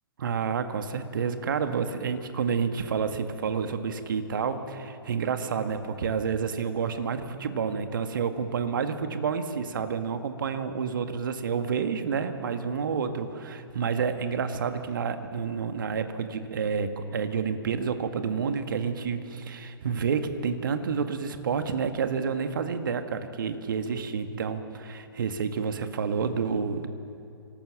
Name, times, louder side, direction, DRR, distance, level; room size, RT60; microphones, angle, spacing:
voice 1, 0.2-26.9, right 6 dB, 55° right, 8 dB, 1.9 m, -29 dB
26.0 x 19.0 x 7.6 m, 2.5 s
figure-of-eight pair, 120°, 13 cm